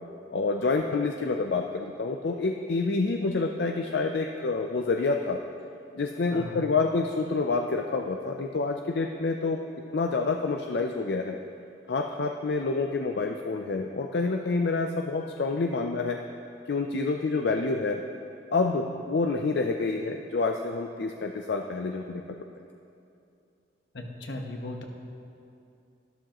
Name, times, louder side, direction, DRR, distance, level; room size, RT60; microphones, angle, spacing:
voice 1, 0.3-5.4 5.9-9.6 9.9-11.4 11.9-16.2 16.7-18.0 18.5-22.2, left 3 dB, 70° left, 4 dB, 0.5 m, -28 dB
voice 2, 6.3-6.6 23.9-24.9, left 1 dB, 85° left, 2 dB, 1.2 m, -37 dB
13.0 x 12.5 x 3.0 m, 2.6 s
head